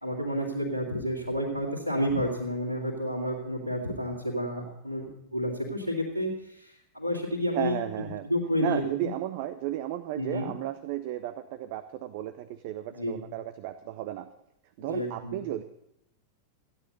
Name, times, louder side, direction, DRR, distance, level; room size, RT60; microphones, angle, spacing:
voice 1, 0.0-9.1 10.2-10.5 12.9-13.2 14.8-15.4, equal, 90° left, -8 dB, 2.5 m, -30 dB
voice 2, 7.5-8.3 8.6-14.3 14.8-15.6, right 13 dB, 50° right, 12 dB, 0.6 m, -34 dB
15.0 x 9.9 x 5.4 m, 0.79 s
figure-of-eight pair, 90°, 0 cm